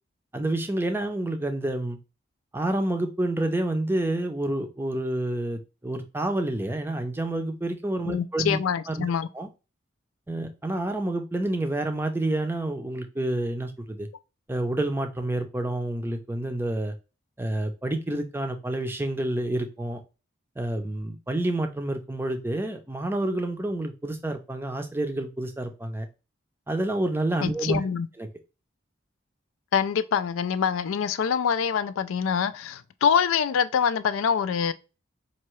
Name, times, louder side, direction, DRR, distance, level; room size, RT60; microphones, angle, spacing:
voice 1, 0.3-2.0 2.5-8.6 8.9-9.1 9.3-9.5 10.3-14.1 14.5-16.9 17.4-20.0 20.6-26.1 26.7-27.8 28.2-28.3, right 1 dB, 10° right, 0.5 m, -28 dB
voice 2, 8.1-9.3 27.4-28.1 29.7-34.7, left 7 dB, 90° left, 0.4 m, -25 dB
4.5 x 2.8 x 3.0 m
head